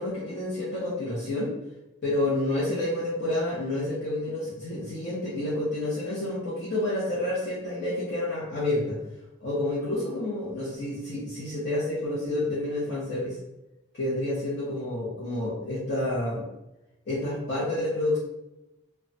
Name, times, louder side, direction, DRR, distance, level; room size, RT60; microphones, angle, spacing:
voice 1, 0.0-1.5 2.0-9.0 9.4-13.4 13.9-16.5 17.1-18.2, left 1 dB, 50° left, -9 dB, 0.7 m, -29 dB
2.3 x 2.2 x 3.9 m, 0.94 s
head